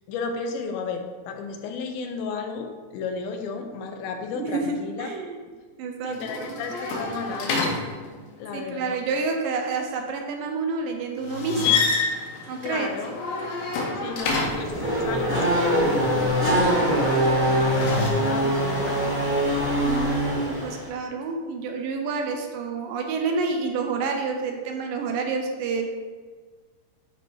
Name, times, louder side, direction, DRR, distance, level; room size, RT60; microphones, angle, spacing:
voice 1, 0.1-5.1 6.0-7.7 8.4-9.0 12.6-13.1 13.9-19.1, left 5 dB, 85° left, 5 dB, 2.5 m, -33 dB
voice 2, 4.3-5.4 5.8-6.6 8.5-11.8 12.5-12.9 19.8-25.9, right 4 dB, 80° right, 3 dB, 2.3 m, -29 dB
sound 1, 6.1-8.4 11.2-14.8 17.4-18.1, left 4 dB, 70° left, 2.1 m, -28 dB
Race car auto racing / Accelerating revving vroom, 14.2-20.9, right 1 dB, 10° right, 0.6 m, -23 dB
10.0 x 3.5 x 4.4 m, 1.4 s
omnidirectional pair, 4.2 m